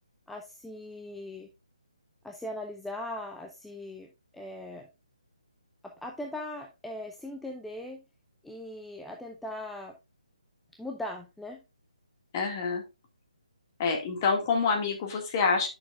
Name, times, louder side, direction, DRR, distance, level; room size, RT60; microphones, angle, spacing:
voice 1, 0.3-1.5 2.2-4.9 5.8-8.0 8.4-10.0 10.8-11.6, left 1 dB, ahead, 2 dB, 0.4 m, -40 dB
voice 2, 12.3-12.8 13.8-15.7, left 5 dB, 25° left, 3 dB, 1.8 m, -27 dB
9.7 x 6.4 x 2.3 m, 0.26 s
figure-of-eight pair, 145°, 4 cm